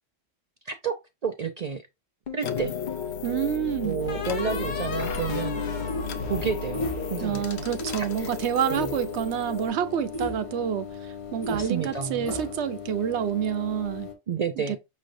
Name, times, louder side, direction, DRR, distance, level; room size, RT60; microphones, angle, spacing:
voice 1, 1.2-1.8 2.3-2.7 3.8-5.6 6.3-7.5 8.0-8.3 8.7-8.9 11.5-12.3 14.3-14.8, right 6 dB, 50° right, 0.5 m, -30 dB
sound 1, 2.3-3.1 4.1-7.4, left 5 dB, 50° left, 0.9 m, -36 dB
sound 2, 2.4-9.7, left 6 dB, 80° left, 0.9 m, -34 dB
voice 2, 3.2-4.0 7.2-14.1 14.6-14.8, right 9 dB, 90° right, 0.9 m, -28 dB
sound 3, 4.0-14.1, left 3 dB, 30° left, 1.1 m, -37 dB
6.2 x 3.2 x 2.5 m
omnidirectional pair, 1.1 m